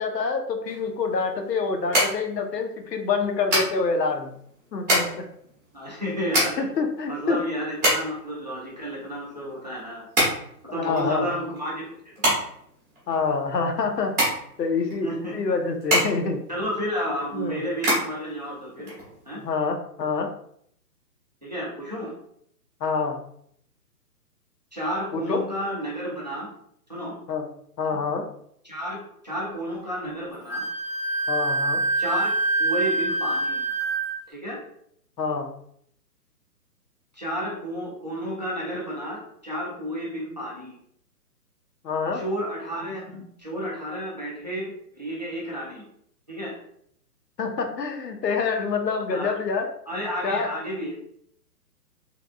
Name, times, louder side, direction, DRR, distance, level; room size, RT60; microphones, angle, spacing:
voice 1, 0.0-4.3 4.7-5.2 6.6-7.4 10.7-11.3 13.1-16.4 17.3-17.6 19.4-20.3 22.8-23.2 25.1-25.4 27.3-27.5 27.8-28.3 31.3-31.8 35.2-35.5 41.8-42.2 47.4-49.7 50.2-50.5, left 4 dB, 85° left, 4 dB, 0.9 m, -26 dB
sound 1, 0.7-19.5, right 1 dB, 10° right, 1.0 m, -28 dB
voice 2, 5.7-6.7 7.1-10.1 10.6-11.9 12.2-12.4 15.0-15.4 16.5-18.9 19.3-19.4 21.4-22.1 24.7-26.5 26.9-27.2 27.9-28.0 28.6-29.0 29.2-30.6 32.0-32.3 32.6-33.7 34.3-34.6 37.1-40.8 42.1-45.8 46.3-46.6 49.1-49.3 49.9-50.9, equal, 30° right, -4 dB, 0.5 m, -31 dB
Wind instrument woodwind instrument, 30.5-34.2, right 2 dB, 40° left, 1.0 m, -25 dB
3.6 x 3.4 x 2.3 m, 0.67 s
hypercardioid pair, 175°, 48 cm